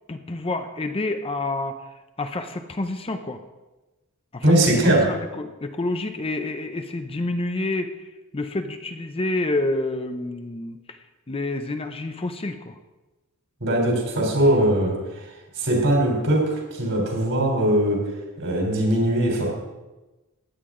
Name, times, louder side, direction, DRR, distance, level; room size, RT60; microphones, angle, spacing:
voice 1, 0.1-1.8 2.2-3.4 4.3-4.5 4.8-8.1 8.3-11.0 11.3-12.8, left 2 dB, 25° left, 7 dB, 0.6 m, -28 dB
voice 2, 4.4-5.1 13.6-15.2 15.6-18.0 18.4-19.5, right 1 dB, 60° right, 0 dB, 3.6 m, -20 dB
15.5 x 9.8 x 3.8 m, 1.1 s
head